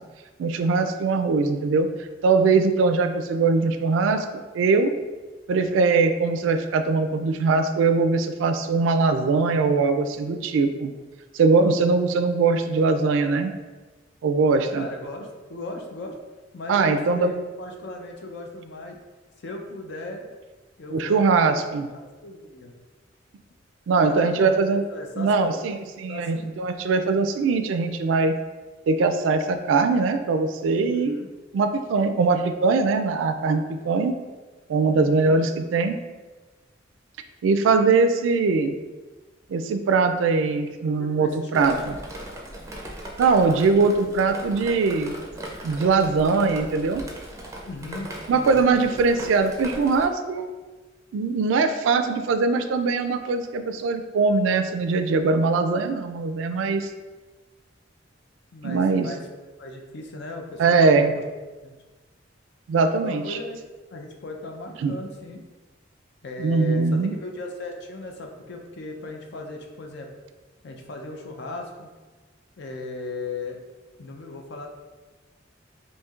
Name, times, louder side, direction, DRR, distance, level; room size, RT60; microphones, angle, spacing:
voice 1, 0.4-1.9 2.2-4.3 4.5-4.9 5.5-10.9 11.3-13.5 14.2-14.9 16.7-17.3 20.9-21.9 23.9-24.8 25.2-28.3 28.9-31.2 31.5-34.1 34.7-36.0 37.4-38.8 39.5-41.9 43.2-45.1 45.6-47.0 48.3-50.5 51.1-56.9 58.6-59.1 60.6-61.1 62.7-63.4 64.8-64.9 66.4-67.1, right 4 dB, 80° right, 8 dB, 0.3 m, -21 dB
voice 2, 14.7-16.2 16.5-19.0 19.4-20.3 20.8-21.6 21.9-22.7 24.0-25.6 26.1-26.5 30.9-31.3 34.9-35.3 41.0-41.8 47.7-49.0 58.5-59.2 59.6-61.2 61.6-61.8 63.0-63.6 63.9-65.4 66.2-70.1 70.6-71.9 72.6-73.6 74.0-74.7, left 2 dB, 60° left, 2 dB, 0.5 m, -37 dB
Drip, 41.5-50.1, right 1 dB, 15° right, 0.5 m, -39 dB
4.3 x 2.7 x 2.3 m, 1.3 s
head